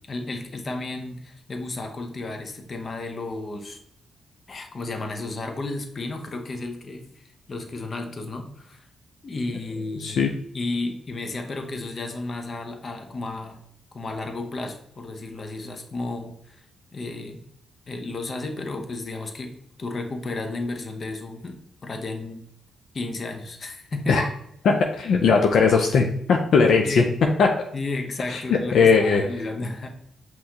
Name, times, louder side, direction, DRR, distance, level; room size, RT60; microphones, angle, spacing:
voice 1, 0.1-3.8 4.5-8.9 9.2-13.6 13.9-16.6 16.9-17.4 17.9-19.5 19.8-22.4 22.9-24.3 26.8-27.1 27.7-29.9, left 2 dB, 45° left, 5 dB, 0.7 m, -33 dB
voice 2, 10.0-10.3 24.1-24.3 24.6-27.0 27.4-27.5 28.3-29.2, left 5 dB, 70° left, 2 dB, 0.4 m, -19 dB
5.5 x 3.0 x 2.8 m, 0.71 s
cardioid pair, 70°, 0 cm